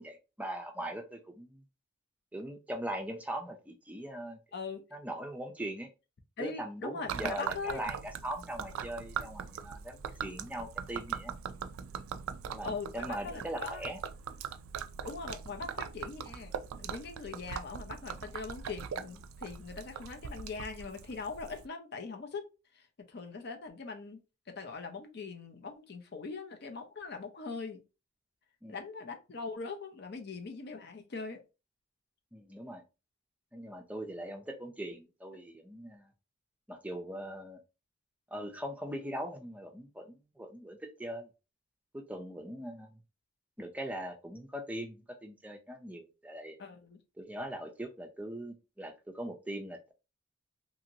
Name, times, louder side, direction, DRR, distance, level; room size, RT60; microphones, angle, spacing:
voice 1, 0.0-1.6 2.3-4.4 4.9-5.9 6.4-11.3 12.5-14.0 28.6-28.8 32.3-32.8 33.5-36.1 36.7-37.6 38.3-41.3 41.9-43.0 43.6-46.6 47.2-49.9, right 1 dB, 5° right, 0.4 m, -41 dB
voice 2, 4.5-4.8 6.4-7.8 12.6-13.8 15.0-22.4 22.7-24.2 24.5-27.8 28.7-31.4 46.6-47.0, left 4 dB, 50° left, 0.5 m, -41 dB
Gurgling / Liquid, 7.1-21.7, right 7 dB, 85° right, 0.3 m, -41 dB
2.9 x 2.7 x 2.7 m
head